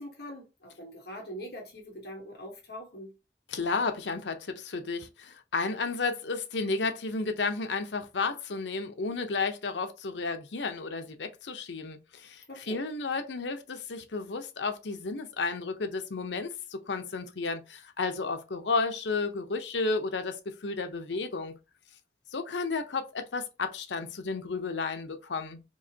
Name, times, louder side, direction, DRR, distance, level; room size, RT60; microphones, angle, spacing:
voice 1, 0.0-3.1 12.5-12.8, equal, 65° left, 1.2 m, -43 dB
voice 2, 3.5-21.6 22.3-25.6, left 4 dB, 85° left, 0.7 m, -32 dB
4.7 x 2.9 x 2.8 m
head